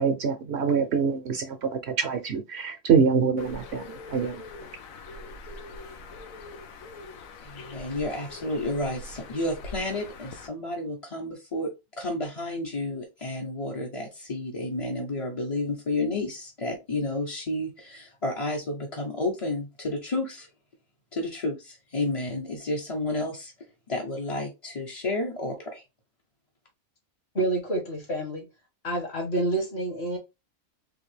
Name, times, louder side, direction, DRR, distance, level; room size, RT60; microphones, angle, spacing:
voice 1, 0.0-4.4, right 6 dB, 65° right, 0.8 m, -25 dB
Bird, 3.4-10.5, left 3 dB, 90° left, 1.1 m, -43 dB
voice 2, 7.4-20.5 21.1-25.8, left 2 dB, 30° left, 0.6 m, -31 dB
voice 3, 27.3-28.5 28.8-30.2, right 2 dB, 55° left, 1.9 m, -28 dB
3.9 x 2.9 x 3.2 m
omnidirectional pair, 1.4 m